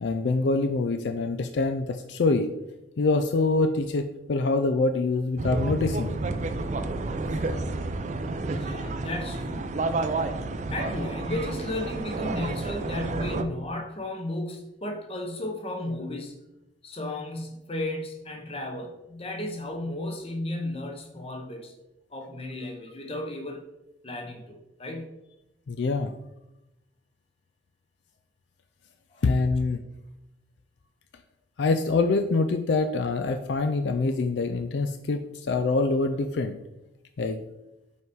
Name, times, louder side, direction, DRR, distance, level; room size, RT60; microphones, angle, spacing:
voice 1, 0.0-2.5 3.0-6.1 25.7-26.1 29.2-29.8 31.6-36.6 37.2-37.4, left 3 dB, 70° left, 7 dB, 0.4 m, -25 dB
sound 1, 5.4-13.4, right 2 dB, 40° right, 0.4 m, -30 dB
voice 2, 8.4-9.7 10.7-16.3 16.8-21.7 22.1-23.6 24.0-25.1 29.1-29.2, left 1 dB, 30° left, 4 dB, 1.0 m, -34 dB
5.6 x 4.7 x 4.6 m, 0.93 s
head